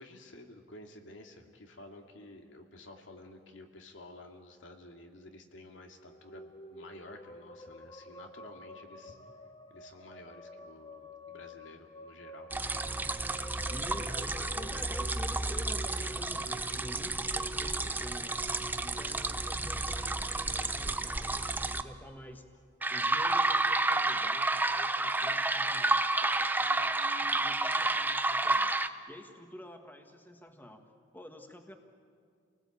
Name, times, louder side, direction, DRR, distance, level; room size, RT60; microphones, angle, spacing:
voice 1, 0.0-9.2 9.7-12.5 18.8-19.1, left 2 dB, 80° left, 3 dB, 2.4 m, -52 dB
sound 1, 5.9-20.4, equal, 25° left, 1.2 m, -49 dB
sound 2, 12.5-21.8 22.8-28.9, right 2 dB, 10° right, 0.6 m, -31 dB
voice 2, 13.7-18.4 18.8-22.5 22.9-28.8 29.1-30.8 31.1-31.8, left 1 dB, 10° left, 5 dB, 1.7 m, -49 dB
29.5 x 19.0 x 8.6 m, 2.2 s
head